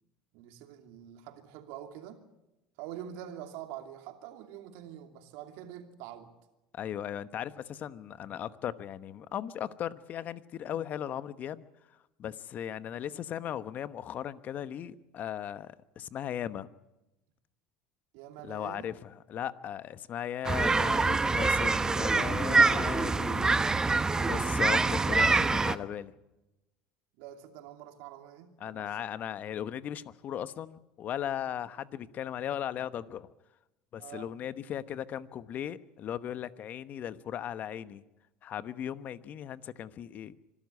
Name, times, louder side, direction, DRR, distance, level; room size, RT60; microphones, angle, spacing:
voice 1, 0.3-2.2 2.8-6.3 18.1-18.9 27.2-29.1 34.0-34.3, right 11 dB, 70° right, 2.8 m, -45 dB
voice 2, 6.7-11.6 12.2-16.7 18.4-23.7 24.2-26.1 28.6-33.3 33.9-38.0 38.4-40.3, left 10 dB, 45° left, 1.1 m, -37 dB
sound 1, 20.4-25.7, right 3 dB, 15° right, 1.0 m, -25 dB
25.5 x 12.5 x 9.7 m
hypercardioid pair, 85°, 4 cm